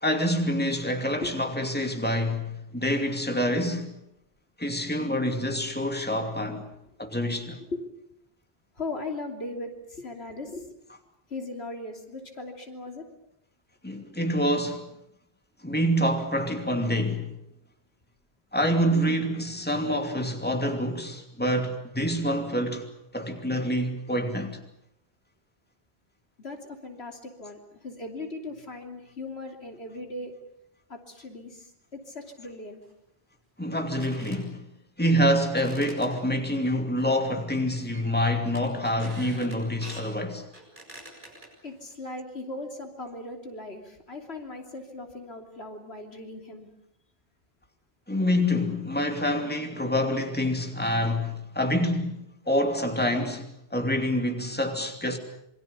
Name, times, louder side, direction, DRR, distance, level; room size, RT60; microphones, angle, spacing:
voice 1, 0.0-4.0 4.6-6.7 7.0-7.6 13.8-14.9 15.6-17.3 18.5-22.9 23.1-24.6 33.6-34.6 35.0-40.4 48.1-52.2 52.5-55.2, equal, 10° left, 2.6 m, -26 dB
voice 2, 8.8-10.7 11.3-13.0 26.4-30.3 30.9-32.8 41.1-41.2 41.6-46.7, left 2 dB, 80° left, 3.3 m, -38 dB
sound 1, 32.3-32.4 32.8-32.9 33.9-34.4 35.4-36.6 37.0-37.4 37.6-38.2 38.5-40.1 40.5-41.9, right 1 dB, 50° right, 7.6 m, -46 dB
27.0 x 23.0 x 7.0 m
omnidirectional pair, 1.0 m